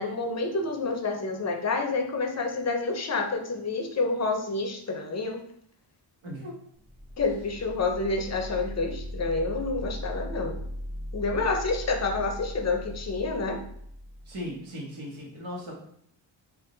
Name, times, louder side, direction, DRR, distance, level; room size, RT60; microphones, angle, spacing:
voice 1, 0.0-5.4 7.2-10.6 11.1-13.6, left 3 dB, 35° left, 3 dB, 0.5 m, -28 dB
voice 2, 6.2-6.6 14.2-15.7, equal, 85° right, -3 dB, 1.3 m, -37 dB
sound 1, 6.7-14.5, equal, 15° right, 0.5 m, -38 dB
3.7 x 2.4 x 3.7 m, 0.67 s
wide cardioid pair, 150°, 47 cm